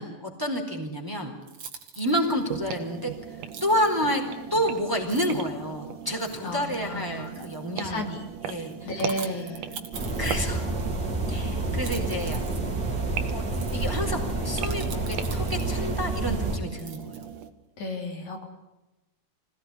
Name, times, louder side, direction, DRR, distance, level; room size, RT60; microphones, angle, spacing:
voice 1, 0.0-1.3 2.0-3.1 3.6-4.2 4.5-8.0 8.5-8.9 10.2-10.7 11.3-12.4 13.3-13.4 13.7-17.2, equal, 5° right, 2 dB, 4.1 m, -29 dB
sound 1, 0.9-1.0 1.4-2.3 3.5-3.9 4.6-4.7 5.0-5.5 6.1-6.6 7.2-7.7 8.7-10.8 11.7-15.9 16.7-17.5, right 6 dB, 55° right, 3.2 m, -44 dB
sound 2, 2.1-17.5, right 9 dB, 75° right, 2.9 m, -39 dB
voice 2, 6.4-7.5 7.8-8.3 8.6-9.7 17.8-18.4, left 1 dB, 65° left, 2 dB, 4.7 m, -33 dB
sound 3, 9.9-16.6, right 2 dB, 35° right, 3.8 m, -29 dB
26.0 x 18.0 x 9.9 m, 1.0 s
omnidirectional pair, 3.6 m